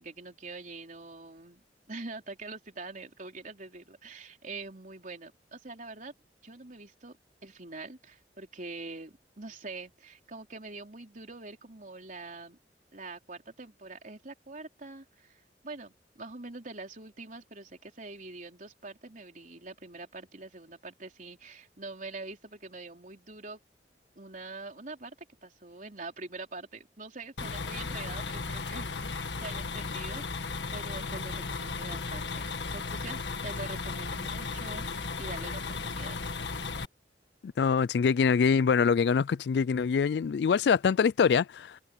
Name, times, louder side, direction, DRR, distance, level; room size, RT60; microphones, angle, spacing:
voice 1, 0.0-1.6 1.9-6.1 6.4-7.2 7.4-12.6 12.9-23.6 24.2-25.2 25.4-36.2, right 3 dB, 50° right, 4.1 m, -44 dB
sound 1, 27.4-36.9, left 4 dB, 85° left, 1.6 m, -35 dB
voice 2, 37.4-41.7, left 6 dB, 65° left, 0.3 m, -24 dB
head